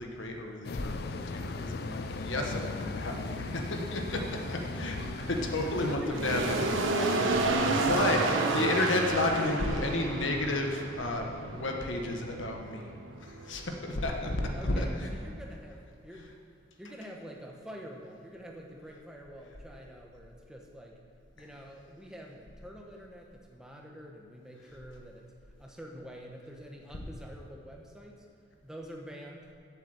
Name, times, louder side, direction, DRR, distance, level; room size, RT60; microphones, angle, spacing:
voice 1, 0.0-4.9 5.3-6.8 7.1-7.3 7.6-8.2 8.5-12.9 13.2-15.1 16.1-16.2 21.4-21.5, left 2 dB, 80° left, 2 dB, 1.3 m, -32 dB
sound 1, 0.6-6.0, left 4 dB, 50° left, 0.4 m, -38 dB
sound 2, 0.9-15.4, right 2 dB, 90° right, 1.1 m, -33 dB
voice 2, 5.8-6.4 6.7-7.4 8.1-10.2 14.5-16.3 16.8-21.0 21.4-25.3 25.6-28.3 28.6-29.5, equal, 5° right, -1 dB, 1.1 m, -45 dB
8.3 x 8.3 x 7.8 m, 2.5 s
head